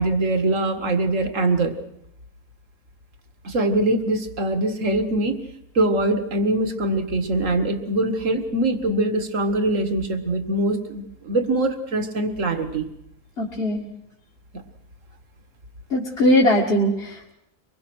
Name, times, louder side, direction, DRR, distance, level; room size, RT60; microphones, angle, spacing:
voice 1, 0.0-1.8 3.4-5.4 5.8-12.9, right 2 dB, 55° right, 8 dB, 2.2 m, -23 dB
voice 2, 13.4-13.9 15.9-17.3, left 1 dB, 40° left, -3 dB, 2.3 m, -20 dB
24.5 x 22.0 x 6.3 m, 0.80 s
omnidirectional pair, 1.6 m